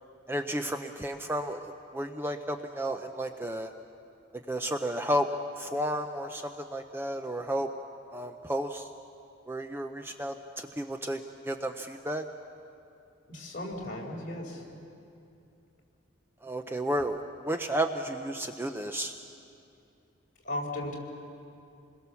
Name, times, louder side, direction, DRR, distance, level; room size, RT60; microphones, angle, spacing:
voice 1, 0.3-3.7 4.5-5.3 5.6-7.7 8.1-8.9 9.5-12.3 16.4-19.1, right 1 dB, 10° right, 6 dB, 0.6 m, -32 dB
voice 2, 13.3-14.8 20.4-21.0, left 1 dB, 45° left, -2 dB, 4.4 m, -36 dB
27.5 x 21.5 x 7.0 m, 2.6 s
head